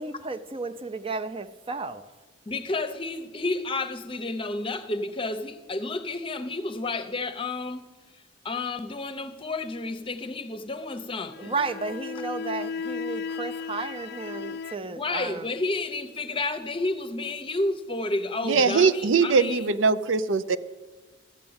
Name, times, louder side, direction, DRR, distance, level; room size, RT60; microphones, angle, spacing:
voice 1, 0.0-2.0 11.4-15.5, right 3 dB, 30° right, 11 dB, 0.6 m, -33 dB
voice 2, 2.5-7.8 8.1-11.5 15.0-19.7, left 2 dB, 30° left, 10 dB, 0.8 m, -31 dB
sound 1, 11.3-14.8, left 5 dB, 55° left, 0.3 m, -35 dB
voice 3, 18.4-20.6, right 5 dB, 80° right, 13 dB, 0.6 m, -21 dB
14.0 x 7.4 x 8.7 m, 1.3 s
head